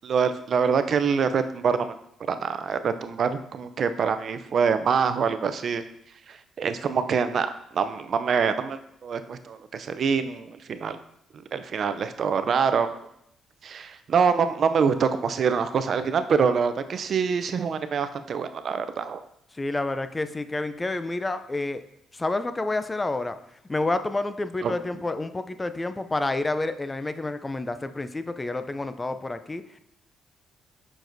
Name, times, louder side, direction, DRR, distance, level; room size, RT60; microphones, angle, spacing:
voice 1, 0.0-1.9 2.3-5.8 6.3-7.5 7.7-11.0 11.5-12.9 13.6-19.2 24.6-24.7, right 6 dB, 55° right, 10 dB, 0.4 m, -25 dB
voice 2, 19.5-21.8 22.1-23.4 23.7-29.8, left 2 dB, 20° left, 11 dB, 0.4 m, -29 dB
7.0 x 6.0 x 2.6 m, 0.76 s
cardioid pair, 90°, 0 cm